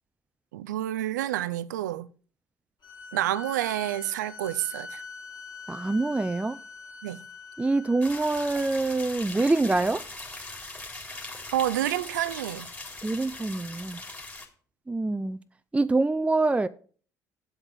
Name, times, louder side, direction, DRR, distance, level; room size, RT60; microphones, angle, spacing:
voice 1, 0.5-2.1 3.1-5.0 7.0-7.2 11.5-12.7, right 13 dB, 80° right, 0.5 m, -29 dB
sound 1, 2.8-8.5, left 4 dB, 50° left, 4.7 m, -43 dB
voice 2, 5.7-6.6 7.6-10.0 13.0-14.0 14.9-15.4 15.7-16.7, right 2 dB, 15° right, 0.6 m, -25 dB
sound 2, 8.0-14.5, left 2 dB, 15° left, 3.8 m, -40 dB
8.0 x 7.3 x 7.7 m
hypercardioid pair, 55°, 10 cm